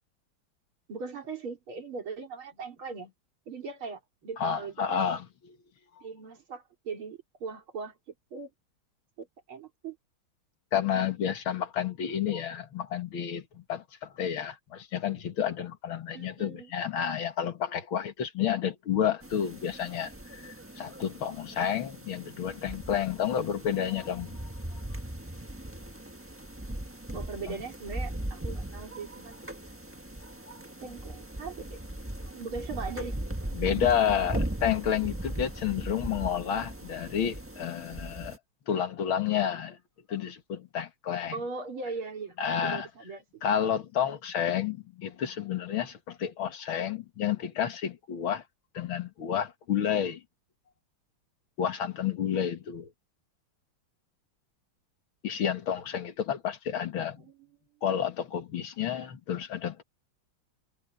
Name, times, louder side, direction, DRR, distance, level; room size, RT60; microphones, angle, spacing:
voice 1, 0.9-3.1 3.5-5.0 6.0-8.0 8.3-8.5 9.2-10.0 16.1-16.7 27.1-29.5 30.8-31.8 32.3-33.2 41.3-43.4 57.2-57.3, right 4 dB, 90° right, 4.2 m, -39 dB
voice 2, 4.4-5.6 10.7-24.4 27.5-27.6 33.5-38.4 38.7-39.8 40.1-41.4 42.4-42.9 43.4-48.4 48.7-50.2 51.6-52.9 55.2-57.2 57.8-59.8, left 9 dB, 75° left, 2.5 m, -30 dB
sound 1, 19.2-38.4, right 1 dB, 10° right, 1.1 m, -38 dB
omnidirectional pair, 2.2 m